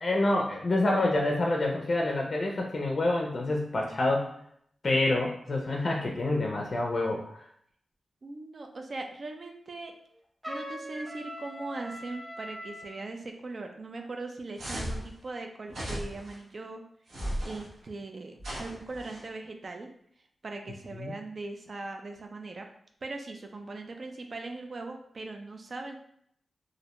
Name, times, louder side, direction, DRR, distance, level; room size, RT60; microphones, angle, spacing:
voice 1, 0.0-4.3 4.8-7.4 20.9-21.1, left 2 dB, 50° left, 0 dB, 0.4 m, -27 dB
voice 2, 8.2-9.9 10.5-16.8 17.4-19.9 20.4-22.7 23.0-26.0, right 3 dB, 55° right, 4 dB, 0.4 m, -40 dB
Trumpet, 10.4-13.0, equal, 20° right, 0.7 m, -41 dB
sound 1, 14.6-15.1 15.7-16.3 17.1-17.6 18.4-19.2, equal, 85° right, 0.8 m, -36 dB
2.5 x 2.1 x 2.9 m, 0.68 s
cardioid pair, 70°, 0 cm